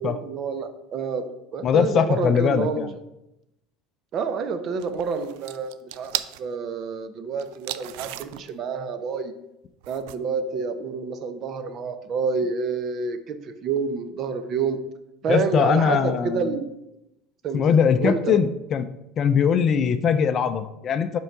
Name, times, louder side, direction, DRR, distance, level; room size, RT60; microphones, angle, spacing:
voice 1, 0.0-2.9 4.1-9.3 9.9-14.8 15.2-16.7 17.4-17.6 18.0-18.4, right 5 dB, 40° right, 10 dB, 0.7 m, -28 dB
voice 2, 1.6-2.9 15.3-16.6 17.5-18.9 19.2-21.2, left 7 dB, 35° left, 11 dB, 0.5 m, -21 dB
sound 1, 4.8-6.4 7.4-8.6 9.8-10.2, right 14 dB, 80° right, 0.3 m, -34 dB
5.6 x 4.6 x 5.8 m, 0.88 s
cardioid pair, 135°, 0 cm